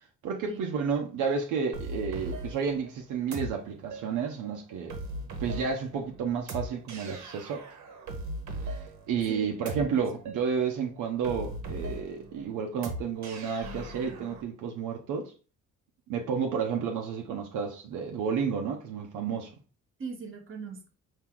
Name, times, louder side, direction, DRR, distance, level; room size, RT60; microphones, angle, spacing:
voice 1, 0.2-4.9 5.4-7.6 8.6-8.8 9.1-15.3 16.1-19.5, right 6 dB, 85° right, 0.7 m, -31 dB
sound 1, 1.7-14.4, right 1 dB, 65° right, 1.1 m, -39 dB
voice 2, 9.3-10.2 20.0-20.9, right 4 dB, 45° right, 1.2 m, -41 dB
4.4 x 2.8 x 3.7 m
cardioid pair, 90°, 30 cm